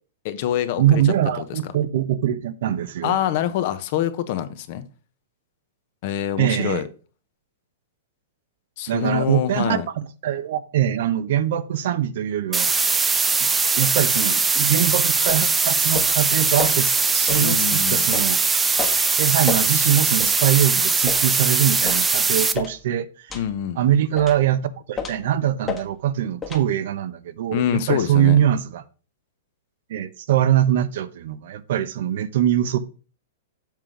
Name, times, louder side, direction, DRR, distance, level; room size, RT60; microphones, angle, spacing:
voice 1, 0.2-1.0 1.4-1.6 3.0-4.8 6.0-6.9 8.8-9.9 17.4-18.1 23.3-23.8 27.5-28.4, left 11 dB, 50° left, 1.0 m, -25 dB
voice 2, 0.8-3.2 6.4-6.8 8.9-12.7 13.4-13.5 13.8-18.4 19.2-23.4 23.8-24.6 24.9-28.8 29.9-32.8, right 10 dB, 65° right, 0.8 m, -22 dB
sound 1, 12.5-22.5, right 4 dB, 10° right, 0.5 m, -20 dB
sound 2, 15.3-15.5 15.9-16.2 16.6-16.8 17.3-17.5 18.1-18.3 18.8-19.0 19.5-19.7 20.2-20.4 21.1-21.3 21.9-22.1 22.5-22.8 23.3-23.5 24.2-24.4 25.0-25.2 25.7-25.8 26.4-26.6, left 6 dB, 15° left, 1.2 m, -30 dB
7.4 x 3.7 x 6.3 m
hypercardioid pair, 140°, 0 cm